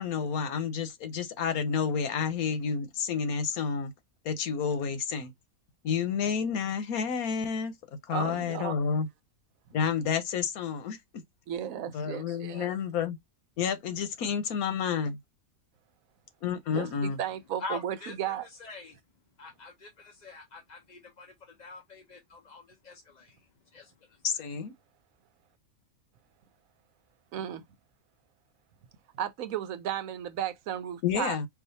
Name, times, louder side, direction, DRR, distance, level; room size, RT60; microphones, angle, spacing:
voice 1, 0.0-3.9 4.2-5.3 5.8-7.8 8.1-9.1 9.7-11.0 11.9-13.2 13.6-15.2 16.4-17.2 24.2-24.7 31.0-31.5, left 6 dB, 85° left, 1.3 m, -30 dB
voice 2, 8.1-8.8 11.5-12.7 16.7-18.5 27.3-27.6 29.1-31.4, right 10 dB, 75° right, 1.1 m, -34 dB
voice 3, 17.6-19.0 19.4-24.2, left 3 dB, 40° left, 0.7 m, -45 dB
4.8 x 2.5 x 4.0 m
omnidirectional pair, 1.5 m